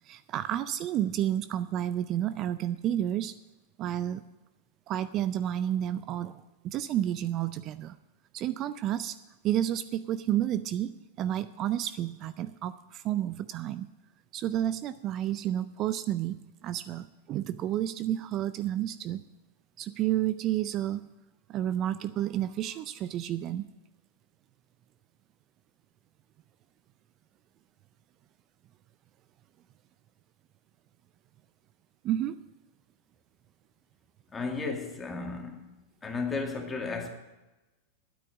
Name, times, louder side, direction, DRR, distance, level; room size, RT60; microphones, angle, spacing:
voice 1, 0.0-3.3 3.8-4.2 4.9-8.0 8.3-9.2 9.4-10.9 11.2-13.9 14.3-19.2 19.8-21.0 21.5-23.7 32.0-32.4, right 11 dB, 40° right, 0.4 m, -30 dB
voice 2, 34.3-35.7 36.0-37.1, left 4 dB, 20° left, 2.2 m, -34 dB
9.5 x 8.6 x 8.1 m
hypercardioid pair, 100°, 0 cm